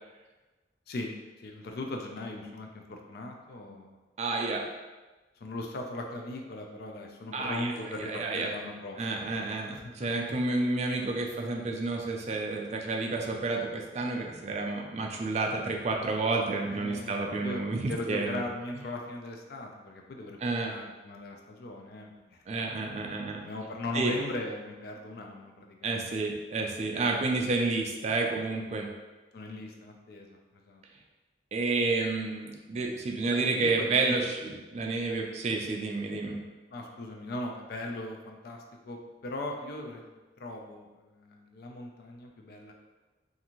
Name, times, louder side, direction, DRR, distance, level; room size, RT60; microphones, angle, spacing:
voice 1, 0.9-4.0 5.4-9.3 9.7-10.4 16.7-17.6 17.9-22.4 23.4-26.2 29.3-30.8 33.2-34.2 36.7-40.1 40.4-42.7, left 1 dB, 55° left, 2 dB, 0.4 m, -39 dB
voice 2, 4.2-4.6 7.3-7.7 8.0-8.5 9.0-18.4 20.4-20.7 22.5-23.4 23.9-24.1 25.8-28.9 31.5-34.4 34.7-36.4, right 3 dB, 35° right, 1 dB, 0.3 m, -30 dB
2.6 x 2.4 x 2.9 m, 1.2 s
head